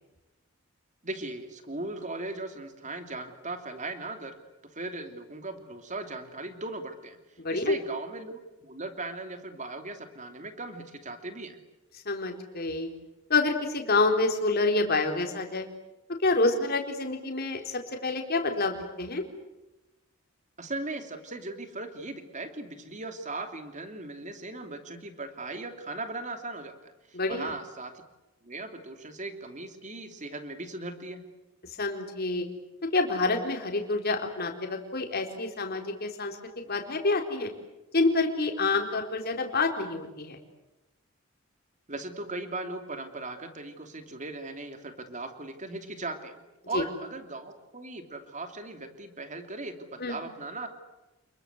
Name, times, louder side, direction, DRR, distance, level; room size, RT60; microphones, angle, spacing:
voice 1, 1.0-4.3 4.6-7.2 7.5-11.6 20.6-27.9 28.4-31.2 41.9-46.3 46.7-50.7, right 2 dB, 35° right, 7 dB, 2.9 m, -38 dB
voice 2, 7.4-7.8 12.1-12.9 13.3-15.7 16.2-17.6 18.0-19.2 27.1-27.5 31.8-32.4 32.9-37.5 37.9-40.4 46.7-46.8 50.0-50.2, left 3 dB, 50° left, 3 dB, 4.1 m, -27 dB
29.5 x 22.0 x 8.2 m, 1.0 s
head